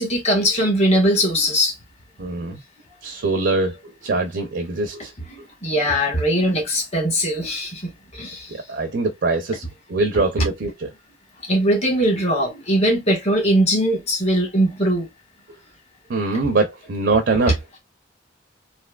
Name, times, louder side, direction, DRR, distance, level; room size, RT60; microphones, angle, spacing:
voice 1, 0.0-1.8 5.3-8.6 10.4-10.5 11.4-15.1, equal, 35° left, 1.5 m, -20 dB
voice 2, 2.2-2.6 3.0-3.7 4.0-5.1 8.5-9.6 9.9-10.9 16.1-17.8, right 3 dB, 65° right, 0.6 m, -23 dB
3.3 x 2.8 x 2.3 m
head